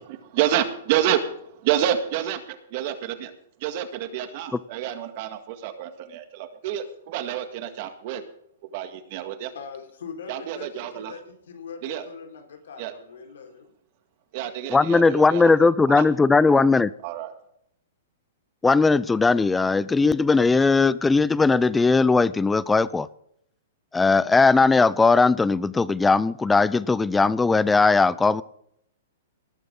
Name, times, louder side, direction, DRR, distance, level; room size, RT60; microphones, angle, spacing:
voice 1, 0.0-3.3 3.6-8.2 8.7-9.5 10.3-11.1 11.8-12.1 12.8-12.9 14.3-15.5 15.9-16.0 16.5-16.6 17.0-17.3, right 11 dB, 35° right, 8 dB, 1.8 m, -28 dB
voice 2, 9.5-13.7, left 6 dB, 75° left, 3 dB, 4.5 m, -41 dB
voice 3, 14.7-16.9 18.6-23.1 23.9-28.4, left 4 dB, 5° left, 18 dB, 0.4 m, -19 dB
19.0 x 11.0 x 3.9 m, 0.71 s
hypercardioid pair, 170°, 0 cm